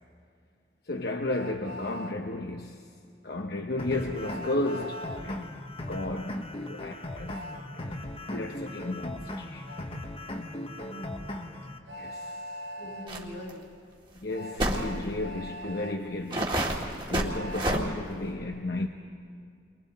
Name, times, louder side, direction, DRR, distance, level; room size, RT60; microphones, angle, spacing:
voice 1, 0.9-2.8 3.2-5.5 5.9-7.6 7.9-9.7 11.9-12.3 14.2-16.7 17.1-18.9, left 2 dB, 65° left, 0.9 m, -33 dB
Train, 1.3-2.1 4.2-5.2 7.3-7.6 9.7-9.8 11.9-13.1 14.3-16.0 17.2-17.8, left 1 dB, 75° right, 1.2 m, -41 dB
sound 1, 3.8-11.8, left 1 dB, 30° left, 1.1 m, -38 dB
voice 2, 10.8-11.6 12.8-13.6, equal, 85° left, 6.0 m, -43 dB
sound 2, 13.1-13.2 13.5-13.6 14.6-14.9 15.6-15.7 16.3-17.8, right 1 dB, 30° right, 2.1 m, -28 dB
30.0 x 23.5 x 4.2 m
head